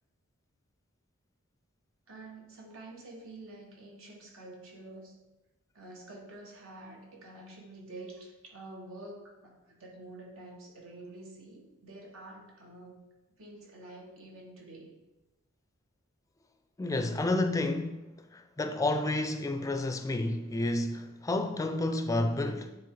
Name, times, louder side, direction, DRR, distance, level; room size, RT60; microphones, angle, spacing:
voice 1, 2.1-5.1 5.7-13.0 13.4-14.9, right 2 dB, 90° right, 1.6 m, -48 dB
voice 2, 16.8-22.8, left 2 dB, 15° left, 0.4 m, -30 dB
9.4 x 3.5 x 3.8 m
head